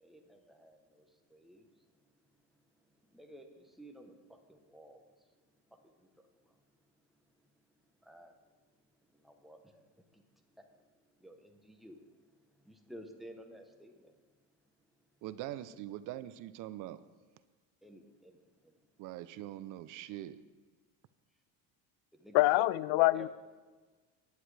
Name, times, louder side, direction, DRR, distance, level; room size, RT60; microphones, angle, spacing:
voice 1, 0.0-2.3 2.8-5.3 5.7-6.6 8.0-8.4 9.1-10.2 10.6-14.1 17.8-18.9 22.1-22.8 23.1-23.3, right 1 dB, ahead, 3 dB, 0.8 m, -55 dB
voice 2, 15.2-17.0 19.0-20.4, right 13 dB, 50° right, 14 dB, 0.5 m, -43 dB
voice 3, 22.3-23.3, left 18 dB, 80° left, 19 dB, 0.5 m, -25 dB
17.0 x 10.0 x 3.2 m, 1.3 s
cardioid pair, 165°, 40 cm